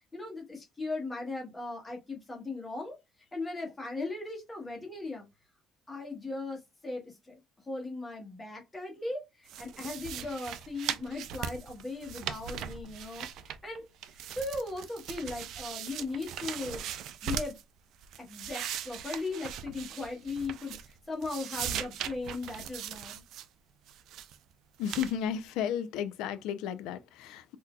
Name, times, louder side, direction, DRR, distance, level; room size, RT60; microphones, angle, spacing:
voice 1, 0.1-3.0 3.3-5.2 5.9-7.4 7.7-13.3 13.6-13.9 14.4-16.8 17.2-17.6 18.2-20.8 21.1-23.2, left 3 dB, 15° left, 1.1 m, -38 dB
sound 1, 9.5-13.8 14.0-17.6 18.0-21.0 21.2-23.5 23.9-24.4 24.8-25.1, right 9 dB, 60° right, 0.4 m, -39 dB
voice 2, 24.8-27.6, left 9 dB, 90° left, 0.4 m, -33 dB
3.9 x 2.6 x 2.2 m
cardioid pair, 170°, 0 cm